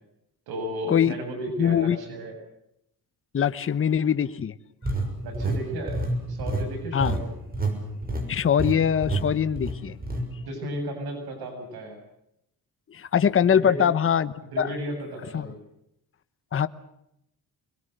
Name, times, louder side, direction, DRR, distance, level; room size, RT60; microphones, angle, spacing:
voice 1, 0.5-2.3 5.2-7.3 10.4-12.0 13.4-13.8 14.5-15.6, equal, 80° right, 4 dB, 7.7 m, -34 dB
voice 2, 1.6-2.0 3.3-4.5 6.9-7.2 8.3-10.0 12.9-14.7 15.3-15.5 16.5-16.7, left 8 dB, 35° left, 13 dB, 1.0 m, -22 dB
sound 1, 4.8-7.8 8.0-8.3 8.6-8.7 9.0-9.2 9.6-10.2, right 2 dB, 25° right, 6.6 m, -27 dB
25.0 x 22.0 x 8.1 m, 0.81 s
cardioid pair, 115°, 37 cm